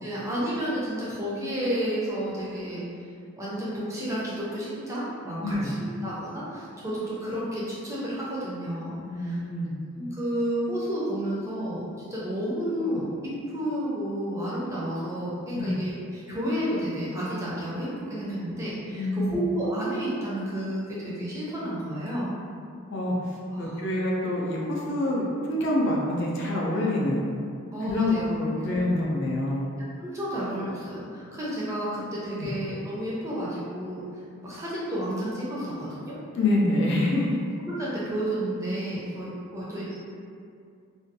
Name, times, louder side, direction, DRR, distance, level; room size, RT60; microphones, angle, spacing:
voice 1, 0.0-2.8 3.4-5.7 6.0-8.9 9.2-9.3 10.0-22.3 23.5-23.7 27.7-28.3 30.0-34.0 34.4-36.1 37.7-39.9, equal, 15° right, -8 dB, 0.4 m, -31 dB
voice 2, 9.0-9.8 15.5-15.7 19.0-19.4 22.9-27.2 27.8-29.7 32.4-32.5 36.3-37.4, left 1 dB, 55° left, -4 dB, 0.4 m, -26 dB
2.5 x 2.2 x 2.6 m, 2.3 s
head